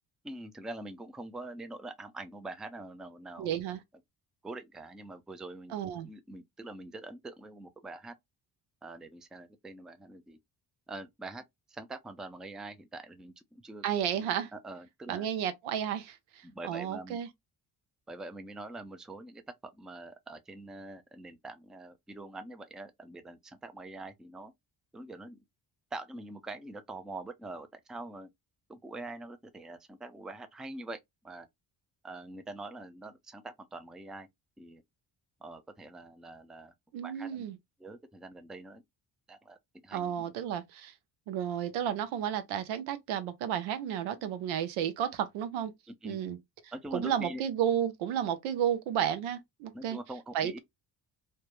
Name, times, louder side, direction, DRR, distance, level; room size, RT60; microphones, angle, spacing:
voice 1, 0.2-3.5 4.4-5.8 6.0-8.1 8.8-10.4 10.9-13.8 14.1-15.3 16.4-17.2 18.1-24.5 24.9-25.4 25.9-28.3 28.7-31.0 31.2-31.5 32.0-34.3 34.6-34.8 35.4-36.7 37.0-37.4 37.8-38.8 39.3-39.6 39.8-40.3 45.9-46.2 46.7-47.4 49.7-50.6, right 2 dB, ahead, 0.3 m, -44 dB
voice 2, 3.4-3.8 5.7-6.1 13.8-14.5 15.1-17.3 36.9-37.6 39.9-40.9 41.3-45.7 46.0-46.4 46.9-50.0 50.3-50.6, right 9 dB, 85° right, 0.6 m, -32 dB
2.2 x 2.0 x 2.9 m
supercardioid pair, 60°, 46 cm